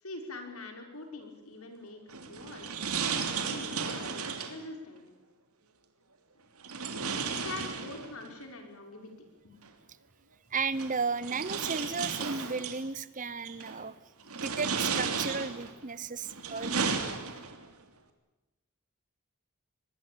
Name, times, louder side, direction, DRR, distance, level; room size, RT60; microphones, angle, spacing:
voice 1, 0.0-2.7 3.1-5.0 7.3-9.1 9.4-9.6, left 2 dB, 75° left, 4 dB, 5.8 m, -44 dB
sound 1, 2.1-4.6 6.6-8.3 9.6-9.7 10.7-12.8 13.4-13.8 14.3-15.7 16.2-17.7, right 5 dB, 80° right, 3.1 m, -34 dB
voice 2, 10.5-13.9 14.3-16.9, right 4 dB, 35° right, 18 dB, 0.9 m, -34 dB
24.5 x 20.5 x 8.8 m, 1.0 s
head